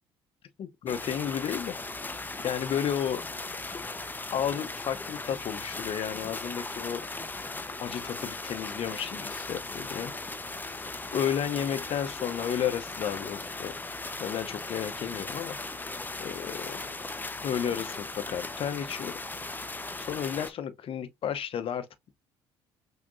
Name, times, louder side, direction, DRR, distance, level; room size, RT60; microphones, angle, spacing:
voice 1, 0.6-1.8 2.4-3.6 4.3-7.1 7.8-10.1 11.1-13.8 14.2-15.6 16.2-17.0 17.4-19.2 20.0-22.1, left 9 dB, 50° left, 0.8 m, -32 dB
sound 1, 0.9-20.5, left 2 dB, 15° left, 0.8 m, -38 dB
5.9 x 2.8 x 2.6 m
hypercardioid pair, 55°, 12 cm